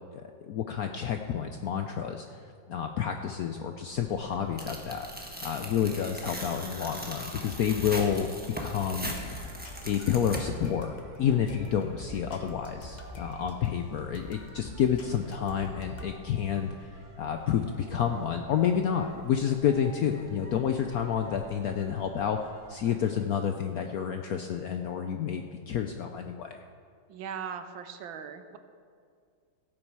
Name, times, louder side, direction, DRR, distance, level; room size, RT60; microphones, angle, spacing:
voice 1, 0.1-5.1 5.4-8.3 8.6-9.1 9.8-26.6, left 8 dB, 75° left, 5 dB, 0.8 m, -29 dB
sound 1, 3.9-23.3, right 2 dB, 40° right, 1.6 m, -51 dB
Tearing, 4.6-10.7, equal, 5° right, 1.0 m, -39 dB
sound 2, 7.1-16.2, left 2 dB, 35° left, 0.7 m, -46 dB
voice 2, 27.1-28.6, right 7 dB, 80° right, 9 dB, 1.6 m, -39 dB
16.0 x 8.7 x 4.7 m, 2.2 s
omnidirectional pair, 2.1 m